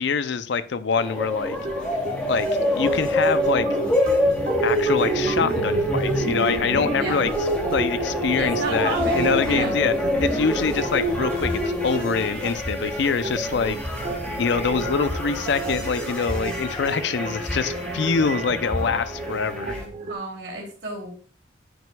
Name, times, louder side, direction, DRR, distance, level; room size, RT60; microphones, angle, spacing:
voice 1, 0.0-1.6 2.3-3.7 4.6-7.3 7.7-9.9 10.2-13.8 14.4-19.7, left 5 dB, 65° left, 13 dB, 0.4 m, -25 dB
sound 1, 0.9-19.8, equal, 5° left, 2.4 m, -26 dB
sound 2, 1.5-20.1, right 2 dB, 40° right, 1.2 m, -34 dB
voice 2, 6.9-7.3 8.4-9.7 20.1-21.1, right 3 dB, 65° right, -1 dB, 2.7 m, -32 dB
8.9 x 6.1 x 2.2 m, 0.40 s
head